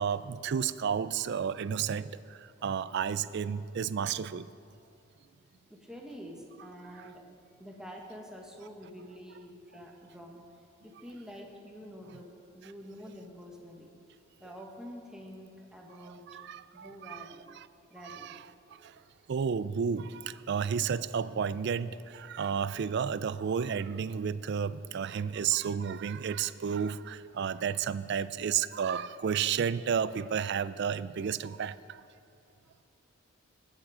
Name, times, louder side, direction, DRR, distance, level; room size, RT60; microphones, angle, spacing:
voice 1, 0.0-4.5 16.0-17.3 17.6-17.7 18.0-18.4 18.8-19.0 19.3-32.0, right 7 dB, 55° right, 0.3 m, -32 dB
voice 2, 5.7-7.2 7.6-10.5 10.8-13.9 14.4-16.2 16.7-17.4 17.9-18.3 18.7-18.9 32.6-32.7, equal, 5° right, 1.4 m, -47 dB
20.0 x 7.5 x 5.0 m
head